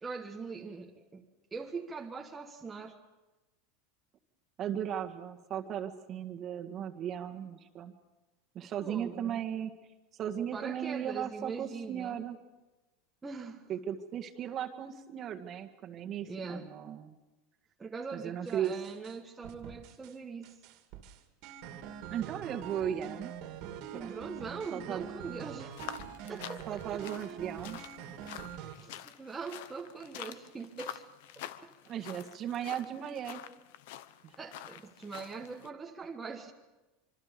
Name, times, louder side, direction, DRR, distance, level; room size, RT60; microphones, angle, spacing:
voice 1, 0.0-1.3 1.5-3.0 8.6-9.4 10.5-12.2 13.2-13.7 16.3-16.7 17.8-20.5 23.9-25.8 26.3-27.0 28.7-31.0 31.3-31.7 34.4-36.5, right 4 dB, 15° right, 0 dB, 1.4 m, -42 dB
voice 2, 4.6-7.9 8.5-9.7 10.2-12.4 13.7-17.2 18.1-18.7 22.1-23.3 23.9-24.2 24.7-25.1 26.7-27.8 31.8-33.4 34.2-34.3, right 9 dB, 35° right, 4 dB, 1.9 m, -36 dB
sound 1, 18.5-19.1 19.4-20.1 20.4-28.7, right 8 dB, 55° right, 2.4 m, -44 dB
sound 2, 25.7-35.7, left 12 dB, 75° left, 1.0 m, -47 dB
26.0 x 24.5 x 5.3 m, 1.1 s
supercardioid pair, 140°, 0 cm